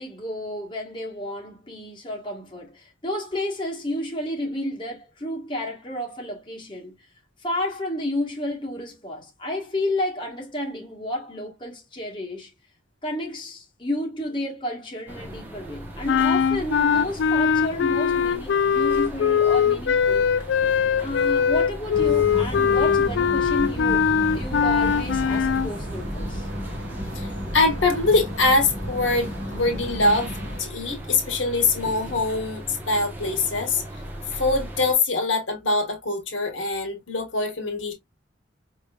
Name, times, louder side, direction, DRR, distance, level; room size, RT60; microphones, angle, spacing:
voice 1, 0.0-6.9 7.4-12.5 13.0-20.3 21.0-24.1 24.3-26.5, left 1 dB, 25° left, 1.4 m, -31 dB
sound 1, 15.1-34.9, right 1 dB, 10° right, 1.1 m, -38 dB
sound 2, 16.1-25.7, left 7 dB, 65° left, 0.3 m, -21 dB
sound 3, 21.9-30.6, equal, 65° right, 2.3 m, -33 dB
voice 2, 27.1-30.3 30.6-33.8 34.3-37.9, left 3 dB, 85° left, 1.6 m, -23 dB
5.0 x 3.1 x 2.4 m
head